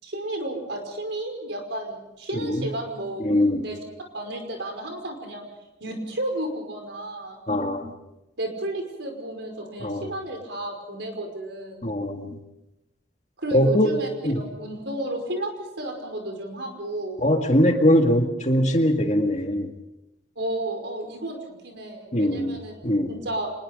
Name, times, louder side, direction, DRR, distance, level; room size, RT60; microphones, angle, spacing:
voice 1, 0.0-3.3 3.6-3.8 4.1-5.4 5.8-7.4 8.4-11.9 13.4-14.1 14.4-17.2 20.4-23.5, right 1 dB, 70° right, 4 dB, 5.4 m, -32 dB
voice 2, 3.2-3.7 7.5-7.9 9.8-10.1 11.8-12.4 13.5-13.9 14.2-14.4 17.2-19.7 22.1-22.6 22.8-23.1, equal, 40° left, 4 dB, 2.0 m, -21 dB
25.5 x 21.5 x 5.4 m, 0.92 s
head